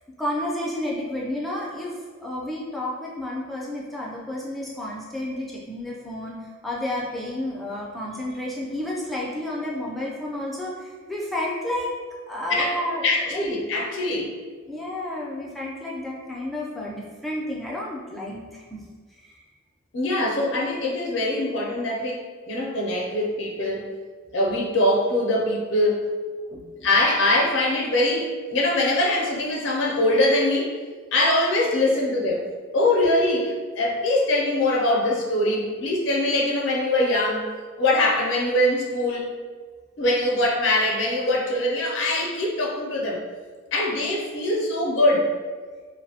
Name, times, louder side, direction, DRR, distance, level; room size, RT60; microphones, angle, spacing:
voice 1, 0.2-2.0 2.2-11.9 12.3-13.5 14.7-18.8 19.2-19.4 26.5-26.9, left 1 dB, ahead, -5 dB, 0.3 m, -31 dB
voice 2, 13.0-14.3 19.9-23.9 24.3-26.0 26.8-30.7 31.1-32.5 32.7-37.5 37.8-39.3 40.0-43.2 43.7-45.3, left 1 dB, 60° left, -2 dB, 0.5 m, -23 dB
2.5 x 2.0 x 2.7 m, 1.5 s
head